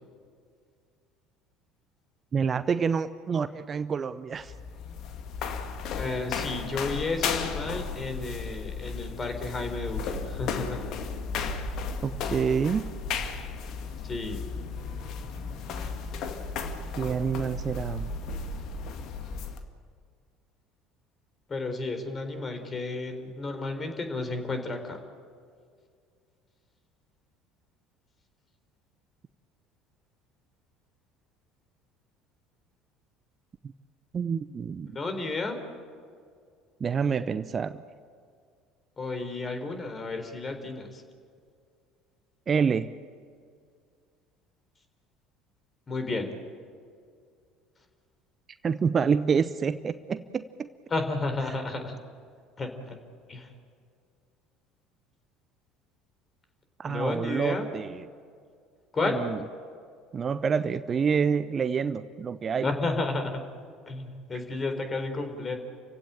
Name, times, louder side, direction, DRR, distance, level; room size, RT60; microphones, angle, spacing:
voice 1, 2.3-4.5 12.0-12.9 17.0-18.1 34.1-35.0 36.8-37.8 42.5-42.9 48.6-50.7 56.8-58.0 59.1-59.4 60.1-62.7, right 6 dB, 35° right, 14 dB, 0.7 m, -27 dB
sound 1, 4.3-19.6, left 5 dB, 50° left, 2.0 m, -34 dB
voice 2, 6.0-10.9 14.0-14.5 21.5-25.0 34.9-35.6 39.0-41.0 45.9-46.3 50.9-52.0 52.6-53.0 53.3-53.5 56.9-57.7 58.9-59.2 62.6-63.4 63.9-65.6, left 3 dB, 30° left, 7 dB, 4.1 m, -32 dB
29.5 x 16.5 x 8.9 m, 2.2 s
figure-of-eight pair, 60°, 0 cm